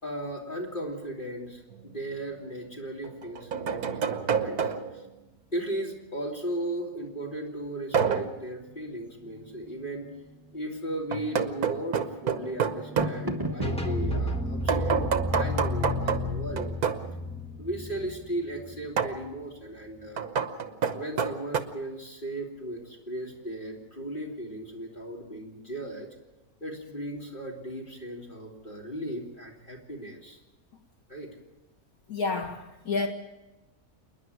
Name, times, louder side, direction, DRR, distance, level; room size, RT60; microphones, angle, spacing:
voice 1, 0.0-4.0 4.3-5.0 5.5-10.1 10.5-15.0 15.3-16.7 17.6-20.2 20.9-26.1 26.6-30.4 31.1-31.3, right 1 dB, 30° left, -1 dB, 3.3 m, -36 dB
sound 1, 1.7-1.8 3.0-5.1 7.9-8.4 11.1-13.2 14.7-17.1 19.0-19.2 20.2-21.6, right 6 dB, 75° right, 1.6 m, -28 dB
sound 2, 8.4-19.2, right 1 dB, 15° right, 1.2 m, -42 dB
sound 3, 13.6-19.3, left 1 dB, 5° left, 1.4 m, -31 dB
voice 2, 32.1-33.1, left 3 dB, 70° left, 3 dB, 2.2 m, -29 dB
28.0 x 10.5 x 9.5 m, 1.1 s
omnidirectional pair, 1.6 m